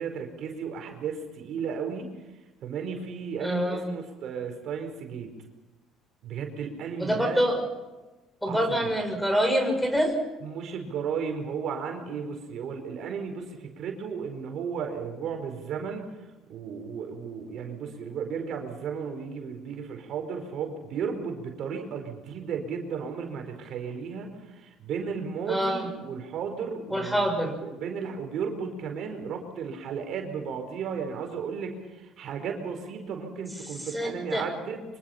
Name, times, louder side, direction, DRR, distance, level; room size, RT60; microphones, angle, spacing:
voice 1, 0.0-2.1 2.6-5.3 6.2-7.4 8.5-8.9 10.4-16.1 16.5-27.3 27.6-34.8, right 6 dB, 60° right, 3 dB, 4.8 m, -34 dB
voice 2, 3.4-3.9 7.0-7.6 8.4-10.1 25.5-25.9 26.9-27.6 33.9-34.4, equal, ahead, 6 dB, 6.1 m, -26 dB
25.0 x 24.5 x 5.8 m, 1.2 s
supercardioid pair, 75°, 0 cm